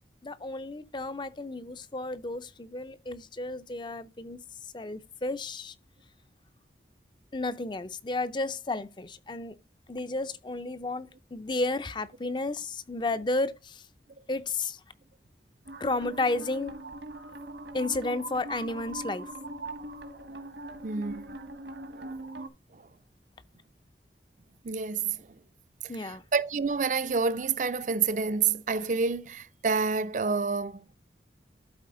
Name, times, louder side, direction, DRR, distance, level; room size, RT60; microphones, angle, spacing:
voice 1, 0.2-4.4 4.7-5.7 7.3-9.6 9.9-13.8 14.3-14.8 15.8-16.7 17.7-19.3 25.9-26.2, left 2 dB, 25° left, 0.5 m, -32 dB
sound 1, 15.6-22.5, right 2 dB, 85° right, 1.6 m, -41 dB
voice 2, 20.8-21.3 21.9-22.1 24.6-25.2 26.0-30.8, right 5 dB, 45° right, 0.5 m, -28 dB
12.5 x 4.2 x 3.8 m
head